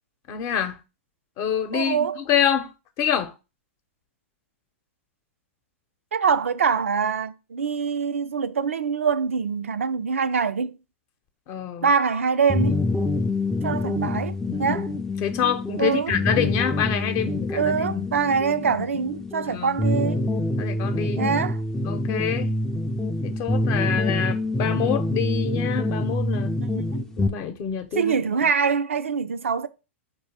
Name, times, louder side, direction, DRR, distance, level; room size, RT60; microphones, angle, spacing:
voice 1, 0.3-0.8 1.4-2.7 3.0-3.3 11.5-11.9 14.5-14.8 15.2-18.0 19.5-19.8 20.6-21.3 21.8-22.5 23.2-26.6 27.2-28.3, left 8 dB, 40° left, 0.7 m, -26 dB
voice 2, 1.7-2.2 6.1-10.7 11.8-12.8 13.6-14.9 15.8-16.1 17.5-20.3 21.2-21.6 26.8-27.1 28.0-29.7, right 6 dB, 90° right, 0.4 m, -24 dB
sound 1, 12.5-27.3, left 2 dB, 5° left, 0.4 m, -26 dB
4.1 x 2.7 x 4.7 m
hypercardioid pair, 110°, 7 cm